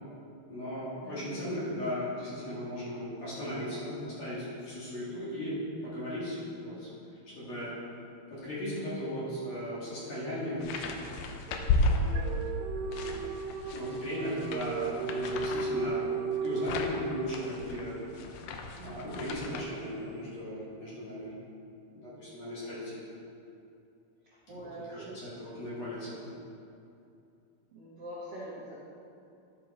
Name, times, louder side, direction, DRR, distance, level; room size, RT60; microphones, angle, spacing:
voice 1, 0.5-5.5 5.8-6.9 7.3-7.7 8.3-11.0 11.7-12.4 12.8-13.4 13.7-16.1 16.4-18.0 18.4-18.5 18.8-21.3 21.9-23.1 24.5-26.3, equal, 45° left, -9 dB, 3.1 m, -37 dB
voice 2, 1.0-1.5 18.7-19.3 24.2-25.2 27.7-28.8, right 1 dB, 60° right, -8 dB, 1.6 m, -45 dB
sound 1, 10.6-12.5 12.9-19.6, left 2 dB, 80° left, 2.2 m, -34 dB
sound 2, 11.5-17.8, right 4 dB, 85° right, 2.0 m, -35 dB
12.5 x 5.5 x 4.2 m, 2.6 s
omnidirectional pair, 4.5 m